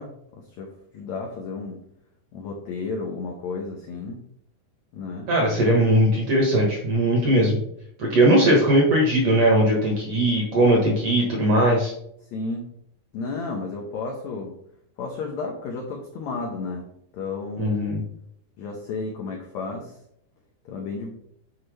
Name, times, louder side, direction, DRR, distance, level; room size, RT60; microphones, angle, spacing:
voice 1, 0.0-1.8 2.3-4.2 4.9-5.3 12.3-12.7 13.1-14.6 15.0-16.9 17.1-17.8 18.6-19.9 20.7-21.1, left 4 dB, 80° left, 1 dB, 1.6 m, -32 dB
voice 2, 5.3-7.6 8.0-11.9 17.6-18.0, right 1 dB, 60° right, -1 dB, 1.8 m, -19 dB
9.9 x 4.4 x 3.3 m, 0.73 s
omnidirectional pair, 4.4 m